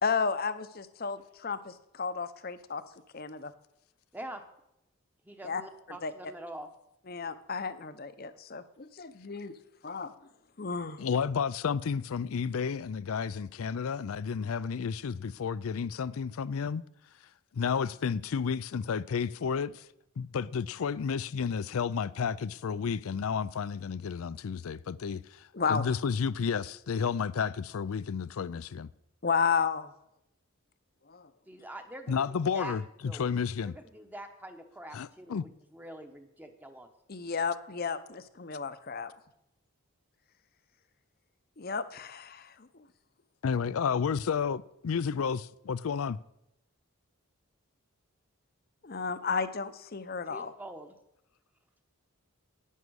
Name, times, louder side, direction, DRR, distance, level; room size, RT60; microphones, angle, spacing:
voice 1, 0.0-2.8 3.1-3.5 5.4-5.6 6.0-6.1 7.1-9.5 9.8-10.1 10.6-11.1 25.5-25.9 29.2-29.9 31.1-31.3 37.1-39.1 41.6-42.7 48.8-50.5, left 5 dB, 45° left, 0.7 m, -33 dB
voice 2, 5.2-6.7 31.5-32.8 33.0-33.2 33.6-36.9 50.3-50.9, right 1 dB, 10° right, 0.9 m, -45 dB
voice 3, 11.0-16.8 17.5-19.8 20.2-28.9 32.1-32.8 33.2-33.7 34.9-35.4 43.4-46.2, left 6 dB, 75° left, 0.4 m, -31 dB
11.0 x 9.4 x 6.3 m
head